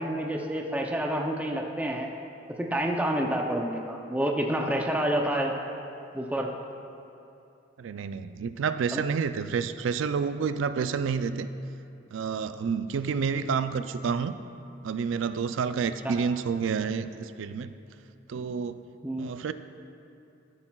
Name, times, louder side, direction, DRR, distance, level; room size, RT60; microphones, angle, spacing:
voice 1, 0.0-2.1 2.5-5.5 6.1-6.5 8.9-9.0 16.0-16.1 18.3-18.5 19.0-19.3, right 1 dB, 10° right, 1 dB, 0.5 m, -28 dB
voice 2, 7.8-11.5 12.1-14.3 14.8-17.7 18.3-18.8 19.2-19.5, right 6 dB, 90° right, 12 dB, 0.4 m, -29 dB
13.0 x 9.7 x 2.3 m, 2.7 s
head